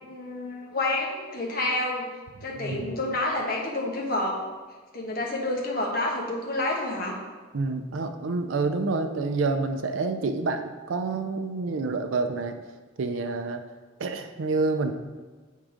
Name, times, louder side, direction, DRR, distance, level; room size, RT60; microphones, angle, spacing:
voice 1, 0.0-2.1 2.4-4.4 4.9-7.1, left 2 dB, 50° left, -2 dB, 1.2 m, -29 dB
voice 2, 2.5-2.9 7.5-12.5 13.0-13.6 14.0-14.9, right 3 dB, 75° right, 6 dB, 0.5 m, -28 dB
7.5 x 3.7 x 5.0 m, 1.3 s
head